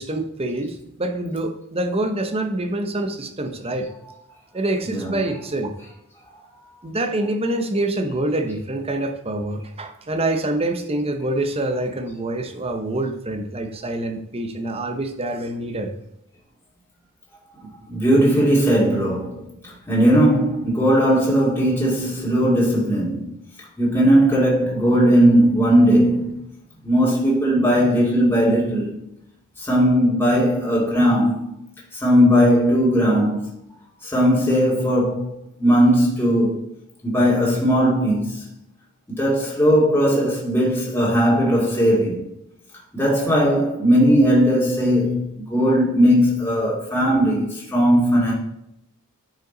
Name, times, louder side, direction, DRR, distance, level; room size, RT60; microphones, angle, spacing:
voice 1, 0.0-3.9 4.5-5.7 6.8-15.9, right 1 dB, 25° right, 0.9 m, -26 dB
voice 2, 4.8-5.4 17.9-19.4 19.9-23.3 23.8-26.4 26.8-28.9 29.6-31.5 31.9-33.5 34.0-35.3 35.6-36.6 37.0-38.4 39.2-42.3 42.9-48.3, equal, 10° left, 2.4 m, -18 dB
10.0 x 5.7 x 4.0 m
head